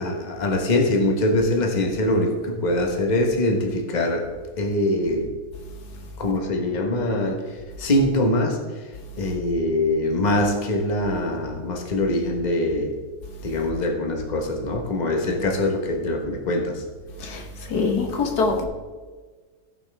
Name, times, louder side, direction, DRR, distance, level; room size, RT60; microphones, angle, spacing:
voice 1, 0.0-5.3 6.2-13.0 13.4-16.8, left 1 dB, 30° left, 1.2 m, -23 dB
voice 2, 17.2-18.7, left 4 dB, 85° left, 1.8 m, -24 dB
16.5 x 5.7 x 3.4 m
omnidirectional pair, 1.6 m